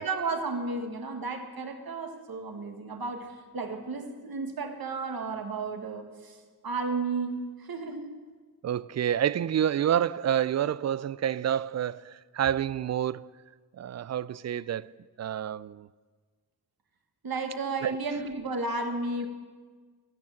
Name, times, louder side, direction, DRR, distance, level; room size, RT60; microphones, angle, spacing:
voice 1, 0.0-6.4 6.6-8.1 17.2-19.3, right 3 dB, 60° right, 1.7 m, -33 dB
voice 2, 8.6-13.3 13.8-14.9 15.2-15.9 17.8-18.0, right 10 dB, 40° right, 0.4 m, -28 dB
15.0 x 6.2 x 7.2 m
cardioid pair, 45°, 41 cm